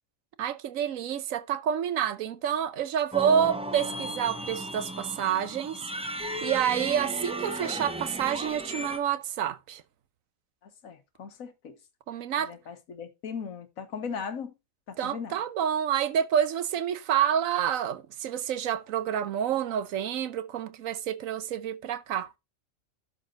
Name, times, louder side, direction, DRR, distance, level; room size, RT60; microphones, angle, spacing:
voice 1, 0.4-5.8 6.4-9.8 12.1-12.5 15.0-22.3, right 9 dB, 85° right, 1.2 m, -28 dB
sound 1, 3.1-9.0, right 1 dB, 5° right, 0.6 m, -35 dB
voice 2, 10.6-11.8 12.3-14.5 14.9-15.4, left 6 dB, 85° left, 1.6 m, -38 dB
12.0 x 4.2 x 3.7 m
omnidirectional pair, 1.4 m